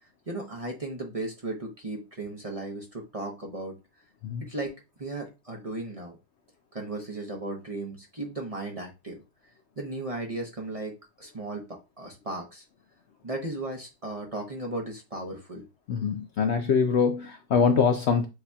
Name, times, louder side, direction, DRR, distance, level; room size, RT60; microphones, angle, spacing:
voice 1, 0.0-3.7 4.4-6.2 6.7-9.2 9.8-12.7 13.2-15.6, right 2 dB, 35° right, 0.6 m, -36 dB
voice 2, 15.9-18.3, left 6 dB, 85° left, 0.5 m, -24 dB
7.8 x 2.8 x 2.3 m
omnidirectional pair, 1.7 m